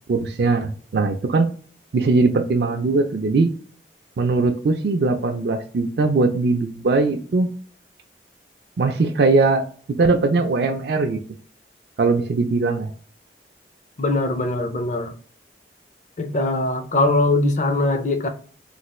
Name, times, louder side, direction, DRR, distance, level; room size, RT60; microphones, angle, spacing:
voice 1, 0.1-1.5 1.9-3.5 4.2-7.5 8.8-9.6 10.0-11.2 12.0-12.9, right 3 dB, 60° right, 0.4 m, -20 dB
voice 2, 14.0-15.1 16.2-18.3, left 2 dB, 45° left, 0.5 m, -21 dB
3.2 x 2.4 x 3.0 m
head